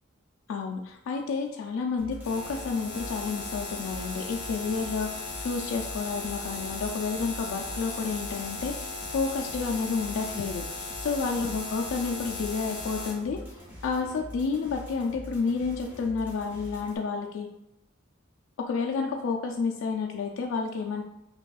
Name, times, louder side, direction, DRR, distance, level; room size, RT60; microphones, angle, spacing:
voice 1, 0.5-13.4 13.8-17.5 18.7-21.0, left 4 dB, 65° left, 1 dB, 0.3 m, -30 dB
sound 1, 2.0-17.0, equal, 10° right, 1.3 m, -44 dB
sound 2, 2.2-13.1, left 3 dB, 50° left, 1.0 m, -37 dB
5.9 x 2.3 x 2.3 m, 0.86 s
head